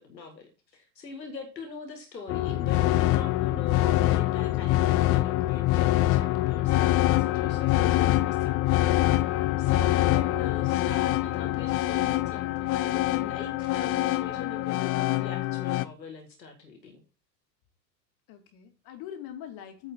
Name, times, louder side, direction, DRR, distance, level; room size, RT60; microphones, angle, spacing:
voice 1, 0.0-8.5 9.6-17.0, left 4 dB, 85° left, 1.9 m, -42 dB
sound 1, 2.3-15.9, left 15 dB, 30° left, 0.5 m, -25 dB
voice 2, 9.2-9.7 18.3-19.9, left 10 dB, 45° left, 2.6 m, -43 dB
9.2 x 4.9 x 5.6 m
figure-of-eight pair, 85°, 50 cm